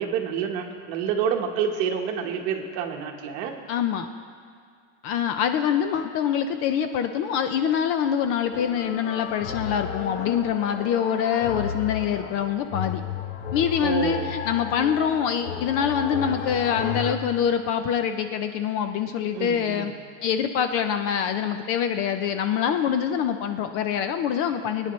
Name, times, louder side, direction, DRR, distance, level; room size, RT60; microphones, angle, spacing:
voice 1, 0.0-3.5 13.8-14.3 19.3-19.9, right 7 dB, 50° right, 3 dB, 1.3 m, -28 dB
voice 2, 3.7-4.1 5.0-13.0 13.5-19.9 20.2-24.9, left 8 dB, 40° left, 8 dB, 0.4 m, -25 dB
sound 1, 8.5-17.1, left 7 dB, 90° left, 1.0 m, -33 dB
22.0 x 9.6 x 3.1 m, 2.1 s
cardioid pair, 175°, 37 cm